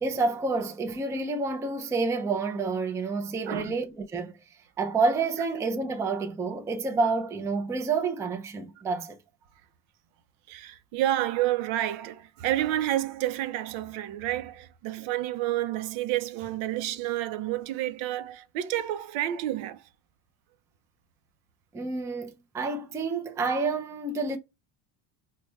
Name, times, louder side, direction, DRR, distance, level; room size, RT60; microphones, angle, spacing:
voice 1, 0.0-4.4 4.8-9.2 21.7-24.4, right 4 dB, 5° right, 0.3 m, -29 dB
voice 2, 3.5-3.8 10.5-19.8, right 13 dB, 75° right, 0.6 m, -29 dB
4.2 x 2.2 x 3.1 m
cardioid pair, 105°, 47 cm